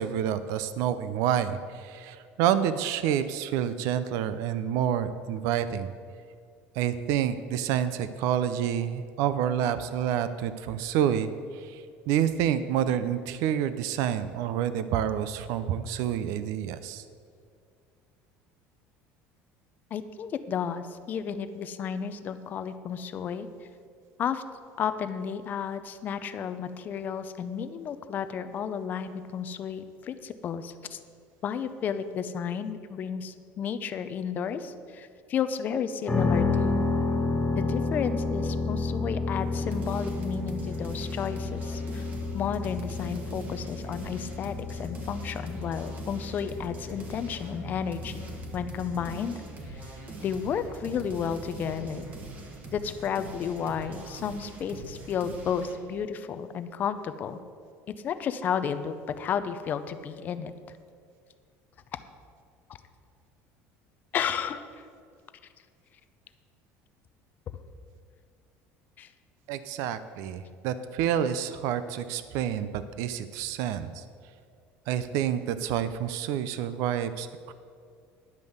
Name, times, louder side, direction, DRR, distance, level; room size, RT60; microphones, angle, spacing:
voice 1, 0.0-5.9 6.8-17.0 69.5-74.0 74.9-77.5, right 9 dB, 65° right, 13 dB, 0.5 m, -28 dB
voice 2, 19.9-23.7 24.2-24.4 24.8-31.0 31.4-36.8 37.6-42.1 42.3-48.2 48.5-49.4 49.7-49.9 50.2-52.1 52.7-57.4 58.0-60.5 64.1-64.6 69.0-69.1, left 7 dB, 30° left, 11 dB, 0.5 m, -32 dB
sound 1, 36.1-51.9, left 3 dB, 5° left, 1.1 m, -32 dB
sound 2, 39.3-55.8, right 2 dB, 30° right, 1.3 m, -43 dB
10.5 x 5.4 x 7.9 m, 2.2 s
cardioid pair, 165°, 6 cm